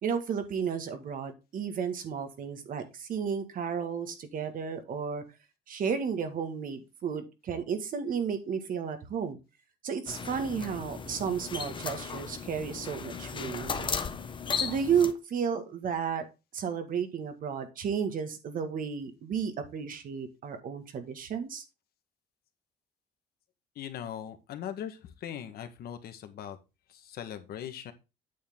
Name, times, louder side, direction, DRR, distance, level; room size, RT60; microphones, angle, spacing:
voice 1, 0.0-5.2 5.7-9.4 9.8-14.0 14.6-16.2 16.5-21.6, right 7 dB, 55° right, 8 dB, 2.0 m, -33 dB
sound 1, 10.1-15.1, left 6 dB, 30° left, 1.0 m, -36 dB
voice 2, 23.7-26.6 27.0-27.9, left 9 dB, 65° left, 8 dB, 1.7 m, -40 dB
8.6 x 6.7 x 3.7 m, 0.27 s
cardioid pair, 110°, 17 cm